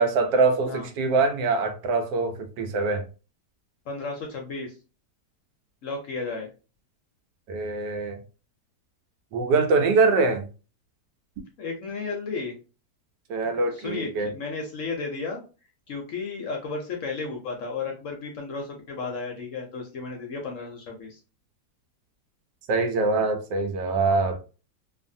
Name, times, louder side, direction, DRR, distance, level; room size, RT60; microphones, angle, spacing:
voice 1, 0.0-3.0 7.5-8.2 9.3-10.4 13.3-14.3 22.7-24.4, right 3 dB, 90° right, 1.3 m, -23 dB
voice 2, 3.9-4.7 5.8-6.5 11.6-12.5 13.4-15.4 15.9-21.2, left 4 dB, 65° left, 0.8 m, -33 dB
2.7 x 2.5 x 2.5 m
omnidirectional pair, 1.8 m